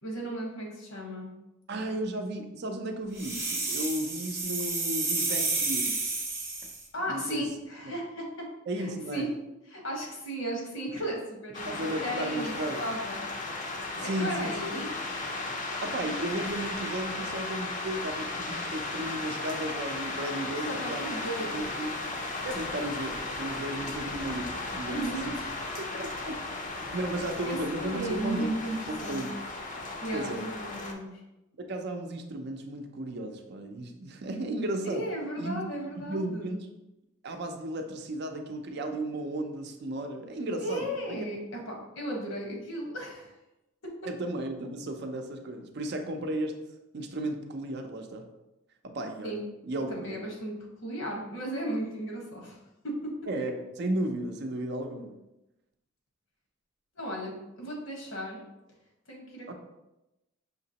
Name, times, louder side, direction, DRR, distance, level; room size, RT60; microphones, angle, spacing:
voice 1, 0.0-1.3 6.9-8.5 8.8-9.3 9.7-13.2 14.0-14.9 20.6-21.6 24.9-26.0 27.4-28.8 29.0-29.3 30.0-31.2 34.8-36.6 40.6-43.3 43.8-43.9 49.2-49.4 49.9-50.5 50.8-52.6 52.8-53.1 56.9-58.5 59.1-59.5, right 1 dB, 75° left, 0 dB, 1.2 m, -35 dB
voice 2, 1.7-6.0 7.1-7.4 8.7-9.2 11.6-12.9 14.0-14.8 15.8-21.1 21.4-21.9 22.4-25.3 25.8-26.4 26.9-28.5 28.9-29.3 30.1-30.5 31.6-35.0 35.4-35.6 36.0-36.7 37.2-41.2 44.1-46.5 46.9-48.2 48.8-49.4 49.6-50.2 53.3-55.2 59.5-59.6, right 1 dB, 55° right, 4 dB, 0.5 m, -34 dB
sound 1, 3.2-6.8, right 3 dB, 10° right, 0.7 m, -30 dB
sound 2, 11.5-30.9, left 2 dB, 40° left, 0.5 m, -36 dB
5.8 x 3.0 x 2.8 m, 0.94 s
head